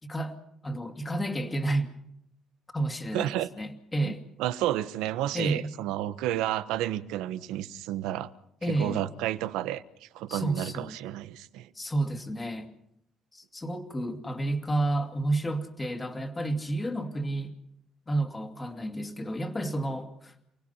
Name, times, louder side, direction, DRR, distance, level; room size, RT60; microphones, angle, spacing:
voice 1, 0.0-0.4 0.6-1.9 2.7-4.2 5.3-5.7 8.6-9.0 10.3-10.9 11.7-12.7 13.3-17.5 18.1-20.3, right 2 dB, 20° left, 2.5 m, -31 dB
voice 2, 3.1-3.5 4.0-4.1 4.4-8.3 8.8-11.7, right 13 dB, 90° right, 1.0 m, -31 dB
29.5 x 17.5 x 5.7 m
cardioid pair, 90°, 0 cm